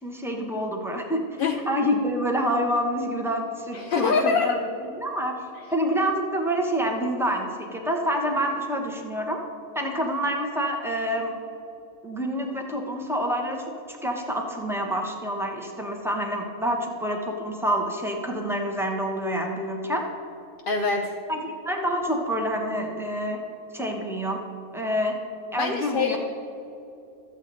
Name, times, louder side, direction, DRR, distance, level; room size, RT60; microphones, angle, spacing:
voice 1, 0.0-1.2 1.7-4.6 5.0-5.4 5.7-9.4 9.7-11.3 12.0-20.0 21.3-23.4 23.7-24.4 24.7-25.2 25.5-26.2, equal, ahead, 1 dB, 1.0 m, -27 dB
voice 2, 3.7-4.6 20.7-21.1 25.6-26.2, left 5 dB, 55° left, 2 dB, 0.7 m, -24 dB
13.5 x 8.1 x 4.0 m, 2.8 s
omnidirectional pair, 1.4 m